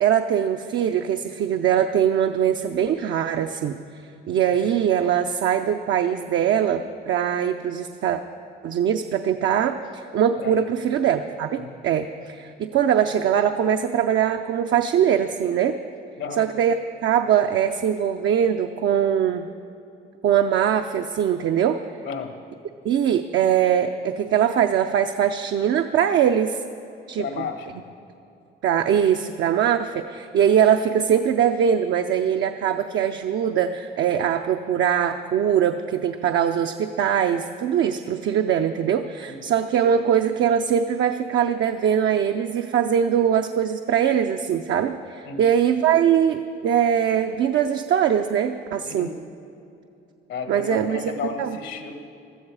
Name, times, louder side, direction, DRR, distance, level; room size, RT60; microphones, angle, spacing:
voice 1, 0.0-3.8 4.3-8.2 8.6-15.8 16.4-16.8 17.0-19.5 20.2-21.8 22.8-26.6 27.1-27.2 28.6-49.1 50.5-51.0 51.4-51.5, right 9 dB, 70° right, 5 dB, 0.6 m, -22 dB
voice 2, 10.3-10.7 11.6-11.8 16.2-16.5 22.0-22.4 27.2-27.8 39.3-39.4 45.2-45.5 48.9-49.2 50.3-51.9, left 5 dB, 75° left, 7 dB, 1.5 m, -33 dB
16.0 x 13.0 x 4.8 m, 2.7 s
cardioid pair, 90°, 20 cm